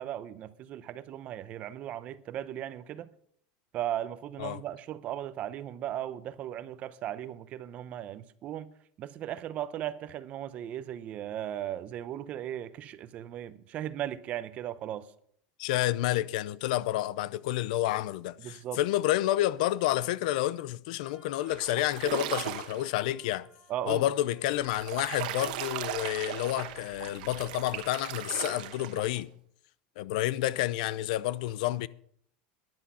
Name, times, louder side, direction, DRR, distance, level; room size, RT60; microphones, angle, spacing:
voice 1, 0.0-3.1 3.7-8.7 9.0-15.1 18.4-18.8 23.7-24.1, right 11 dB, 35° right, 0.7 m, -37 dB
voice 2, 15.6-23.5 23.9-29.3 30.0-31.9, left 14 dB, 75° left, 0.6 m, -29 dB
Wind instrument woodwind instrument, 21.0-26.1, equal, 5° left, 3.7 m, -61 dB
sound 1, 21.5-22.9 24.5-29.2, right 12 dB, 85° right, 1.2 m, -37 dB
13.5 x 10.5 x 5.6 m
supercardioid pair, 170°, 4 cm